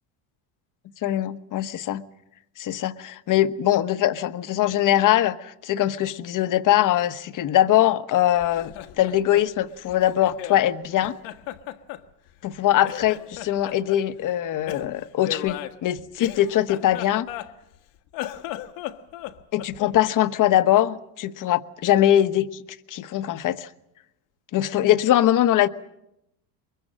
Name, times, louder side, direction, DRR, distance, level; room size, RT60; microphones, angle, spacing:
voice 1, 1.0-2.0 2.6-11.2 12.4-17.3 19.5-22.6 22.9-23.7 24.5-25.7, left 12 dB, 40° left, 1.1 m, -22 dB
Laughter, 8.4-10.7 11.0-12.5 12.8-14.0 14.7-17.8 18.1-20.0, left 13 dB, 70° left, 1.5 m, -36 dB
23.0 x 22.5 x 7.5 m
supercardioid pair, 105°, 46 cm